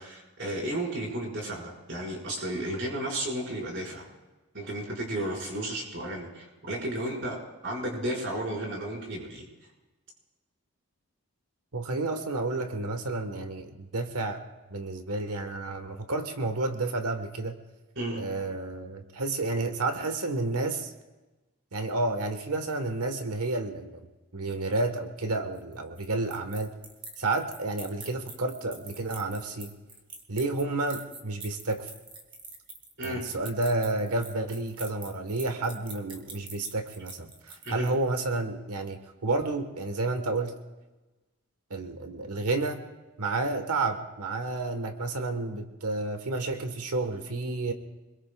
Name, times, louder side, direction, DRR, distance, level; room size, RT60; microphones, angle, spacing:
voice 1, 0.0-4.1 4.5-7.4 7.6-9.5 17.9-18.2 33.0-33.2 37.6-37.9, right 1 dB, 55° right, -3 dB, 4.9 m, -33 dB
voice 2, 11.7-14.4 14.7-17.5 18.2-20.9 21.7-24.1 24.3-26.7 27.2-29.7 30.3-31.9 33.0-40.6 41.7-42.8 43.2-47.7, right 2 dB, 90° right, 6 dB, 1.3 m, -30 dB
sound 1, 25.5-38.1, right 3 dB, 20° right, 1.4 m, -45 dB
26.0 x 21.5 x 2.3 m, 1.1 s
head